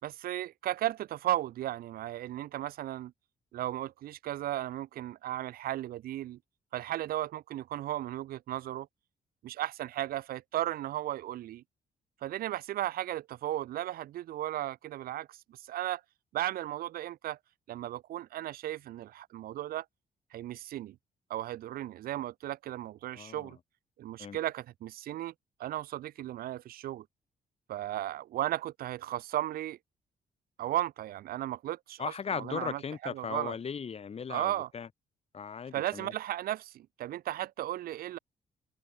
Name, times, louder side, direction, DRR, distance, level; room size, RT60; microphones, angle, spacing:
voice 1, 0.0-3.1 3.5-6.4 6.7-8.9 9.4-11.6 12.2-16.0 16.3-17.4 17.7-19.8 20.3-20.9 21.3-23.6 24.0-25.3 25.6-27.0 27.7-29.8 30.6-33.6 34.3-34.7 35.7-38.2, right 13 dB, 85° right, 4.7 m, -35 dB
voice 2, 23.2-23.5 24.2-24.4 32.0-34.9 35.3-36.1, left 6 dB, 45° left, 5.6 m, -37 dB
cardioid pair, 110°, 15 cm